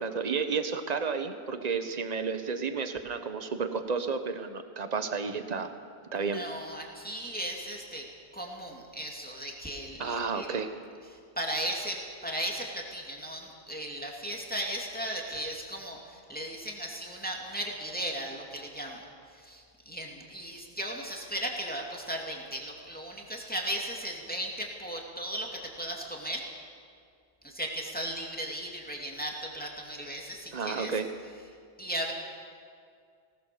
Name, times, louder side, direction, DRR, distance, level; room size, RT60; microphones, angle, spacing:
voice 1, 0.0-5.7 6.1-6.4 10.0-10.7 30.5-31.1, right 5 dB, 40° right, 8 dB, 1.3 m, -31 dB
voice 2, 6.1-8.1 8.3-10.6 11.0-26.5 27.4-31.0 31.8-32.1, right 1 dB, 10° left, -1 dB, 2.5 m, -36 dB
19.5 x 19.5 x 6.9 m, 2.2 s
omnidirectional pair, 1.1 m